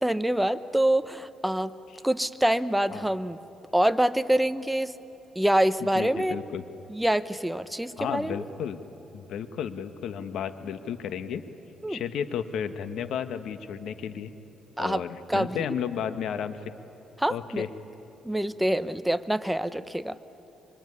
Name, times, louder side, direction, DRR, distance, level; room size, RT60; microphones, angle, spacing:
voice 1, 0.0-1.7 2.0-3.4 3.7-4.9 5.4-6.4 6.9-8.3 11.8-12.0 14.8-15.0 15.3-15.6 17.2-17.6 18.2-20.2, right 1 dB, 5° right, 12 dB, 0.9 m, -25 dB
voice 2, 5.9-6.6 8.0-8.8 9.1-11.4 11.9-14.3 14.8-16.6 17.3-17.7, left 8 dB, 75° left, 11 dB, 1.3 m, -33 dB
25.0 x 23.5 x 9.8 m, 3.0 s
cardioid pair, 90°, 0 cm